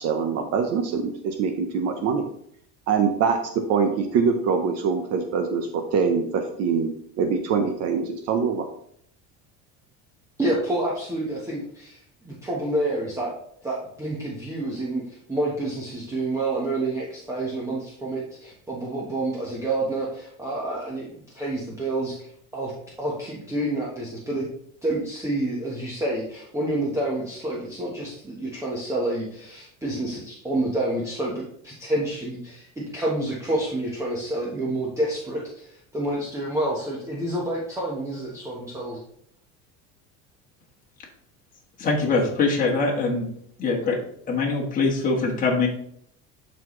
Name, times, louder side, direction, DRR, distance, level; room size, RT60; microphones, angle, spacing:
voice 1, 0.0-2.2 2.9-3.4 3.7-6.9 7.2-8.7, right 5 dB, 50° right, 5 dB, 0.8 m, -24 dB
voice 2, 10.4-12.0 12.2-13.3 13.6-21.1 21.3-22.3 22.5-22.7 23.0-24.5 24.8-39.0, right 1 dB, 10° right, -5 dB, 1.2 m, -28 dB
voice 3, 41.8-43.3 43.6-44.0 44.3-45.7, left 3 dB, 25° left, -2 dB, 1.5 m, -23 dB
12.0 x 4.2 x 3.1 m, 0.67 s
cardioid pair, 165°, 33 cm